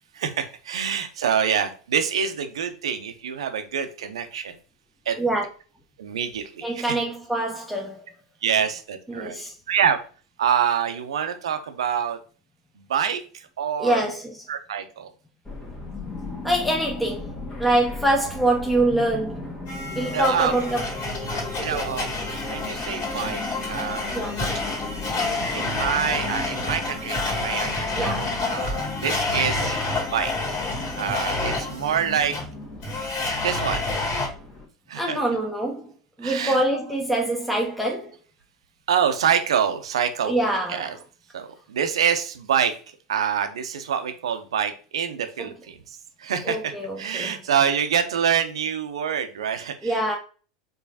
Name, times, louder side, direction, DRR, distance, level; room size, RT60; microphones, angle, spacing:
voice 1, 0.1-4.5 5.1-5.2 6.0-7.0 8.4-9.4 9.7-10.0 10.4-12.2 12.8-14.0 14.5-15.1 20.1-20.5 21.6-22.1 22.5-23.4 23.7-24.2 25.5-29.8 30.1-30.6 31.0-32.3 33.4-33.8 34.9-35.2 36.2-36.6 38.9-41.0 41.3-42.7 43.1-46.7 47.0-50.2, right 8 dB, 75° right, 0.6 m, -26 dB
voice 2, 6.6-8.0 9.1-9.5 13.8-14.4 16.4-17.3 17.6-19.4 19.9-20.9 21.6-21.8 24.1-24.4 28.0-28.3 34.9-35.9 36.2-38.1 40.2-40.9 46.4-47.4 49.8-50.2, right 1 dB, ahead, 0.8 m, -24 dB
sound 1, 15.4-34.6, left 2 dB, 20° left, 1.3 m, -36 dB
Domestic sounds home sounds, 19.7-34.3, left 3 dB, 45° left, 2.0 m, -29 dB
4.8 x 3.1 x 2.7 m
hypercardioid pair, 85°, 3 cm